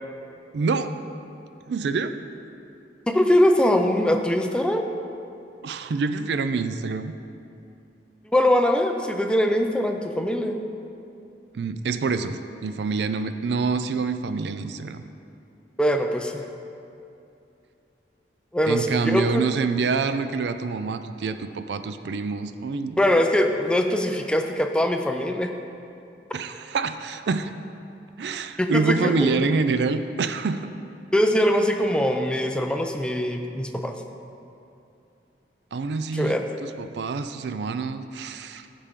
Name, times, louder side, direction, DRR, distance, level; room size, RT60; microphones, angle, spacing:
voice 1, 0.5-0.9 1.7-2.1 5.6-7.1 11.5-15.1 18.7-23.0 26.3-27.5 28.2-30.7 35.7-38.7, right 4 dB, 70° right, 10 dB, 0.4 m, -26 dB
voice 2, 3.1-4.8 8.3-10.6 15.8-16.4 18.5-19.4 23.0-25.5 28.6-29.5 31.1-33.9 36.1-36.4, left 1 dB, 5° left, 4 dB, 0.4 m, -22 dB
14.0 x 5.1 x 3.7 m, 2.7 s
head